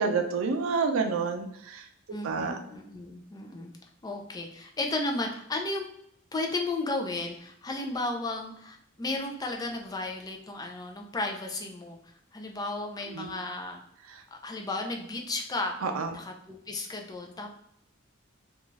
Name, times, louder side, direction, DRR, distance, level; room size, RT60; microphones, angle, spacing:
voice 1, 0.0-1.8 2.2-2.6 13.1-13.3 15.8-16.1, right 4 dB, 85° right, 6 dB, 0.5 m, -28 dB
voice 2, 2.1-3.7 4.0-5.9 6.3-12.0 12.3-13.8 14.3-15.8 16.1-17.5, left 2 dB, 20° left, 2 dB, 0.4 m, -34 dB
2.5 x 2.3 x 3.0 m, 0.74 s
head